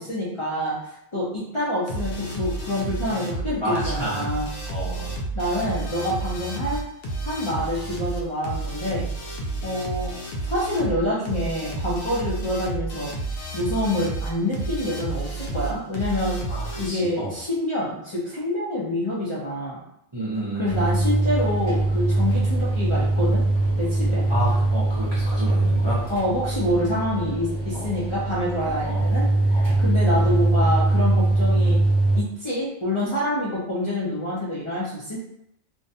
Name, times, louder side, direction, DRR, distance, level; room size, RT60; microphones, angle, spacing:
voice 1, 0.0-4.5 5.3-6.8 7.2-9.1 9.6-10.1 10.4-13.1 13.5-16.4 16.8-19.8 20.6-23.4 23.8-24.2 26.1-31.8 32.1-35.2, left 1 dB, 40° left, -9 dB, 0.5 m, -27 dB
sound 1, 1.9-16.9, right 2 dB, 85° left, 0.9 m, -31 dB
voice 2, 3.6-4.3 4.6-5.1 16.5-17.4 20.1-20.9 24.3-26.0 27.7-28.0 28.8-29.0 29.5-29.7, right 1 dB, 30° right, -9 dB, 0.6 m, -30 dB
sound 2, 20.7-32.2, right 2 dB, 60° left, 1.1 m, -22 dB
2.5 x 2.2 x 2.7 m, 0.76 s
omnidirectional pair, 1.2 m